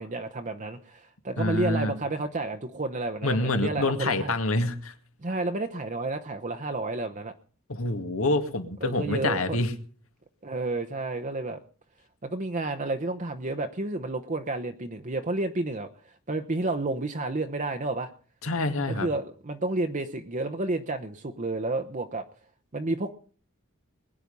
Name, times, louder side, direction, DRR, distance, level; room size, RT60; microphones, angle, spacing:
voice 1, 0.0-4.3 5.2-7.3 8.8-9.6 10.4-11.6 12.2-18.1 18.9-22.2 22.7-23.1, right 2 dB, 35° right, 7 dB, 0.9 m, -31 dB
voice 2, 1.4-1.9 3.2-4.9 7.7-9.7 18.4-19.1, left 2 dB, 80° left, 7 dB, 2.1 m, -27 dB
21.5 x 9.9 x 5.4 m, 0.43 s
head